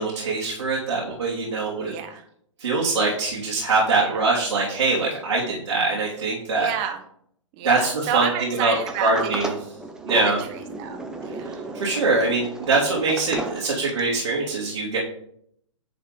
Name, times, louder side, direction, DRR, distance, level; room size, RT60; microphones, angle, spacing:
voice 1, 0.0-1.9 2.6-6.7 7.6-9.5 10.0-10.4 11.7-15.0, right 3 dB, 70° right, -5 dB, 3.0 m, -23 dB
voice 2, 1.9-2.2 3.9-4.2 6.5-7.0 7.5-9.1 10.8-11.6, right 8 dB, 30° right, 5 dB, 1.4 m, -30 dB
Sliding door, 8.7-14.2, right 2 dB, 5° right, 0.8 m, -33 dB
10.5 x 4.3 x 5.1 m, 0.67 s
figure-of-eight pair, 125°, 17 cm